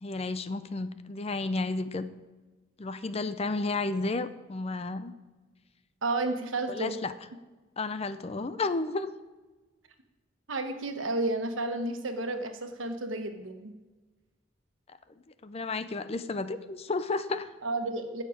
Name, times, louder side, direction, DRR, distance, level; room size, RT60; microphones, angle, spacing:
voice 1, 0.0-2.1 2.8-5.1 6.7-7.1 7.8-9.1 15.4-17.5, left 3 dB, 30° left, 12 dB, 0.5 m, -32 dB
voice 2, 6.0-7.0 10.5-13.7 17.6-18.2, right 2 dB, 85° right, 6 dB, 1.2 m, -31 dB
16.0 x 6.6 x 5.1 m, 1.2 s
head